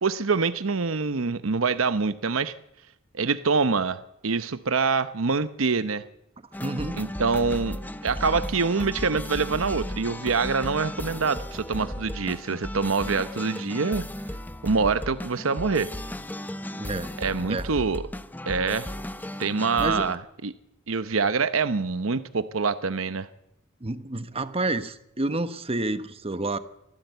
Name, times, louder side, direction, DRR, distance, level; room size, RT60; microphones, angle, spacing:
voice 1, 0.0-2.5 3.1-6.0 7.0-14.0 14.6-15.9 17.2-18.0 18.5-18.9 19.4-20.5 20.9-23.3, right 4 dB, 75° right, 12 dB, 0.9 m, -25 dB
sound 1, 6.5-20.1, left 1 dB, 10° left, 0.7 m, -35 dB
voice 2, 6.6-7.0 16.8-17.1 17.5-17.7 19.8-20.1 23.8-26.6, right 2 dB, 30° right, 11 dB, 1.1 m, -29 dB
24.0 x 15.0 x 8.0 m, 0.84 s
head